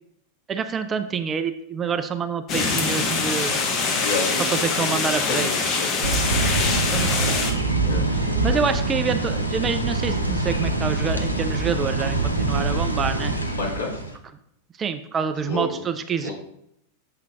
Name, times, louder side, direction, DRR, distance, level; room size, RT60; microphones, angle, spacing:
voice 1, 0.5-3.6 4.5-5.8 6.9-7.6 8.1-13.3 14.8-16.3, right 6 dB, 20° right, 9 dB, 0.4 m, -27 dB
sound 1, 2.5-7.5, left 4 dB, 30° left, 1.1 m, -24 dB
voice 2, 4.0-4.4 4.7-6.9 7.8-8.6 13.5-14.0 15.5-15.7 16.2-16.3, left 3 dB, 65° left, -4 dB, 1.9 m, -31 dB
sound 2, 6.0-14.2, right 2 dB, 90° right, 0.6 m, -24 dB
7.3 x 5.6 x 2.4 m, 0.76 s
figure-of-eight pair, 90°, 0 cm